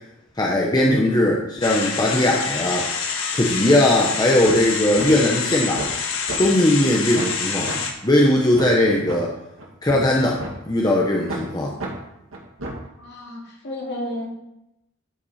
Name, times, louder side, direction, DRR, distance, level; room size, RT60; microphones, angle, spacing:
voice 1, 0.4-2.9 3.3-5.8 6.4-7.7 8.0-9.3 9.8-11.7, left 1 dB, 20° left, -2 dB, 1.0 m, -19 dB
sound 1, 1.6-7.9, left 5 dB, 80° left, 1.5 m, -27 dB
sound 2, 4.1-4.2 4.5-4.7 5.0-5.1 5.5-6.0 6.3-6.4 6.8-6.9 7.2-7.4 7.7-7.8 8.2-8.3 8.6-8.7 9.1-9.2 9.6-10.5 10.9-11.0 11.3-11.5 11.8-11.9 12.3-12.9, right 2 dB, 80° right, 2.1 m, -31 dB
voice 2, 13.0-14.3, left 1 dB, 55° left, -3 dB, 2.7 m, -32 dB
12.0 x 6.0 x 4.3 m, 0.87 s
head